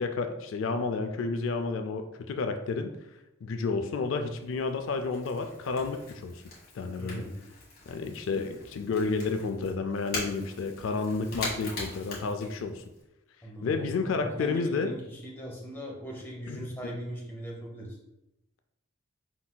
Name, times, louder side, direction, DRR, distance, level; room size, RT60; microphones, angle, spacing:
voice 1, 0.0-3.0 3.4-6.4 6.7-7.3 7.9-12.8 13.6-14.9 16.5-16.6, left 4 dB, 80° left, 6 dB, 0.4 m, -31 dB
Crackle / Crack, 3.5-13.0, left 2 dB, 50° left, 1.3 m, -42 dB
voice 2, 6.9-7.4 13.4-13.8 14.2-18.0, equal, 10° left, -2 dB, 0.7 m, -39 dB
4.6 x 4.0 x 2.2 m, 0.91 s
head